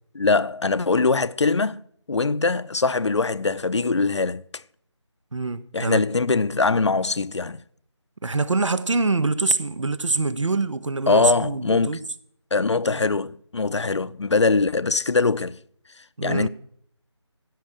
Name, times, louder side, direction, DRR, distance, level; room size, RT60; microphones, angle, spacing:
voice 1, 0.1-1.8 2.1-4.6 5.7-7.6 11.1-12.0 12.5-15.6 16.2-16.5, left 3 dB, 70° left, 0.6 m, -22 dB
voice 2, 5.3-6.0 8.2-12.0 16.2-16.5, right 3 dB, 85° right, 1.0 m, -24 dB
16.0 x 6.1 x 8.7 m
figure-of-eight pair, 180°, 15 cm